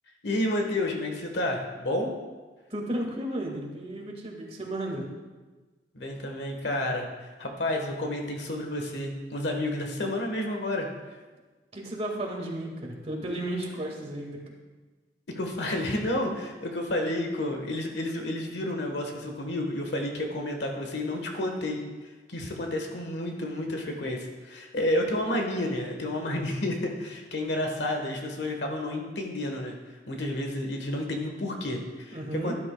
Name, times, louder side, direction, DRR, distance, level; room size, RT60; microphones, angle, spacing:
voice 1, 0.2-2.1 5.9-7.1 7.4-10.9 15.3-21.8 22.3-29.7 30.1-32.5, left 1 dB, 75° left, 3 dB, 1.3 m, -30 dB
voice 2, 2.7-5.1 11.7-14.6 32.1-32.5, right 1 dB, 35° right, -1 dB, 1.9 m, -33 dB
12.5 x 12.5 x 2.3 m, 1.3 s
head